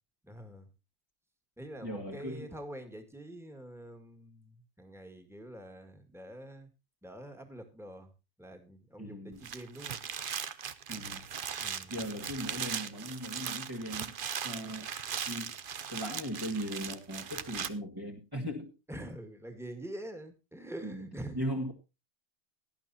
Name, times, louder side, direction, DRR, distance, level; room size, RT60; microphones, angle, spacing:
voice 1, 0.3-0.7 1.6-6.7 7.0-8.1 8.4-10.0 11.4-11.9 18.9-21.4, right 1 dB, ahead, 6 dB, 2.1 m, -45 dB
voice 2, 1.8-2.5 9.0-9.4 10.9-11.2 11.9-14.1 14.4-14.9 15.3-15.5 15.9-18.7 20.8-21.1 21.3-21.7, equal, 20° right, 0 dB, 1.9 m, -38 dB
sound 1, 9.3-17.7, right 7 dB, 50° right, 0.9 m, -39 dB
17.5 x 11.5 x 2.8 m, 0.27 s
omnidirectional pair, 1.2 m